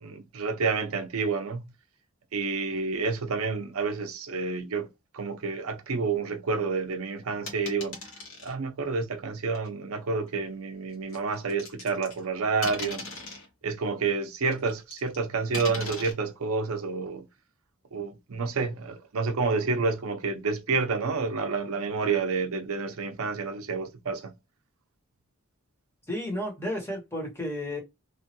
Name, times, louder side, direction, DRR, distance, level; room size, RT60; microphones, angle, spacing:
voice 1, 0.0-1.6 2.3-4.9 5.1-8.0 8.4-13.1 13.6-17.3 17.9-24.3, right 4 dB, 80° right, 0.6 m, -29 dB
sound 1, 7.5-8.5 9.5-9.7 11.1-12.2 12.6-13.5 14.5-15.2 15.5-16.1, left 2 dB, 70° left, 1.4 m, -38 dB
voice 2, 26.1-27.8, left 1 dB, 10° left, 1.0 m, -32 dB
3.1 x 2.2 x 2.8 m
head